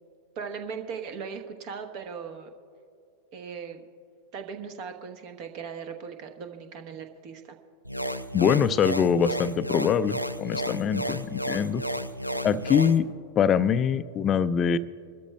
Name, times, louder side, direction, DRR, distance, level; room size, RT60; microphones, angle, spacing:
voice 1, 0.3-2.5 3.3-3.8 4.3-7.6, right 6 dB, 45° right, 6 dB, 1.1 m, -38 dB
sound 1, 7.9-13.0, equal, 90° left, 0.4 m, -32 dB
voice 2, 8.3-11.8 12.4-13.1 13.4-14.8, left 7 dB, 30° left, 16 dB, 0.4 m, -23 dB
26.0 x 13.0 x 2.2 m, 2.4 s
figure-of-eight pair, 90°, 0 cm